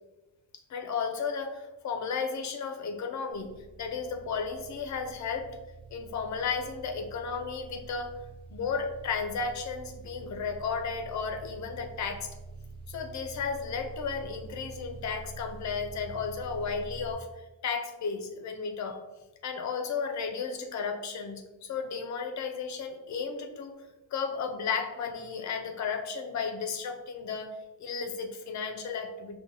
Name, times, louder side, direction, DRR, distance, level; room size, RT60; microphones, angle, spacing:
voice 1, 0.7-3.5 3.8-5.6 5.9-8.2 8.5-12.3 12.9-19.0 19.4-23.8 24.1-27.5 27.8-29.4, left 5 dB, 40° left, 5 dB, 0.4 m, -34 dB
sound 1, 3.3-17.2, right 3 dB, 10° right, 0.7 m, -46 dB
5.1 x 2.1 x 2.7 m, 1.1 s
wide cardioid pair, 170°, 45 cm